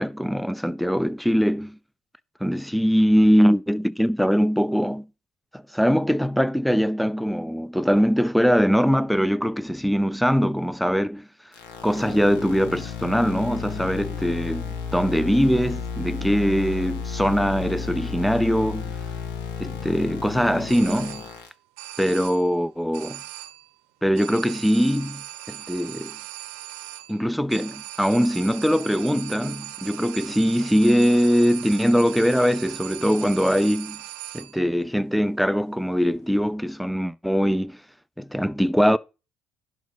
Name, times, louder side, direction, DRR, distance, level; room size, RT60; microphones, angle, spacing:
voice 1, 0.0-1.8 2.4-5.1 5.5-11.3 11.8-19.0 19.6-21.2 22.0-23.2 24.0-26.2 27.1-34.0 34.3-37.8 38.2-39.0, equal, ahead, 0.6 m, -22 dB
sound 1, 11.5-21.5, left 6 dB, 70° left, 2.0 m, -33 dB
sound 2, 20.7-21.5 21.8-22.6 22.9-23.8 24.1-34.7, right 14 dB, 75° right, 0.8 m, -39 dB
11.0 x 3.9 x 5.2 m
hypercardioid pair, 60°, 4 cm